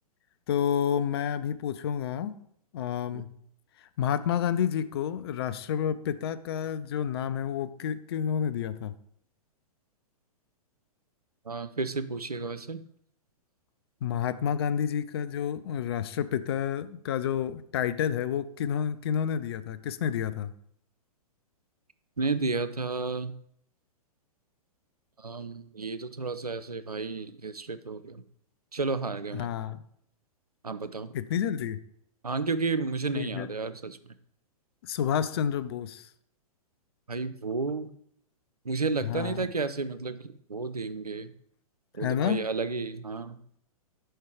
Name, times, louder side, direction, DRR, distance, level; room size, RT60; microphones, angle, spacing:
voice 1, 0.5-2.3 2.7-3.3 4.0-8.9 14.0-20.5 29.3-29.8 31.1-31.8 33.1-33.5 34.8-36.1 39.0-39.5 42.0-42.4, left 8 dB, 45° left, 12 dB, 0.4 m, -29 dB
voice 2, 11.5-12.8 22.2-23.3 25.2-28.2 28.7-29.5 30.6-31.1 32.2-34.0 37.1-37.9 38.6-41.3 41.9-43.4, right 4 dB, 85° right, 12 dB, 0.5 m, -32 dB
4.5 x 4.5 x 4.7 m, 0.68 s
figure-of-eight pair, 110°, 19 cm